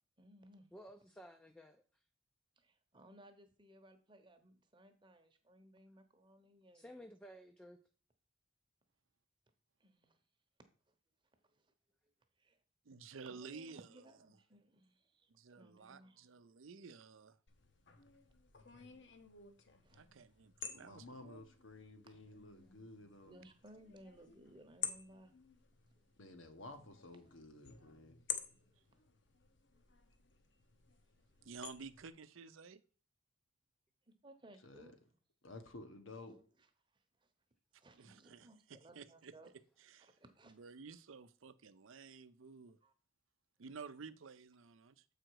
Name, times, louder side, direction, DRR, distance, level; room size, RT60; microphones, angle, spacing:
voice 1, 0.2-0.7 2.6-6.9 9.8-10.2 10.9-11.0 11.3-11.7 12.0-12.6 13.2-16.3 18.8-19.3 19.8-20.0 22.1-22.2 23.2-25.3 28.6-28.8 29.7-29.8 34.2-34.9 36.3-36.7 36.9-37.3 37.7-39.5 40.2-40.7 42.8-42.9, right 1 dB, 25° right, 0.9 m, -62 dB
voice 2, 0.7-2.0 6.7-7.8, equal, 5° left, 0.4 m, -55 dB
voice 3, 12.9-14.2 15.3-17.4 19.9-21.4 31.5-32.8 38.0-38.5 38.9-39.3 39.8-40.1 40.5-42.8 43.6-45.0, right 5 dB, 80° right, 0.6 m, -53 dB
sound 1, 17.5-32.1, left 8 dB, 60° left, 0.9 m, -51 dB
voice 4, 20.7-23.4 26.2-28.2 34.6-34.9 35.4-36.4, left 2 dB, 75° left, 1.2 m, -53 dB
7.7 x 5.0 x 4.7 m
head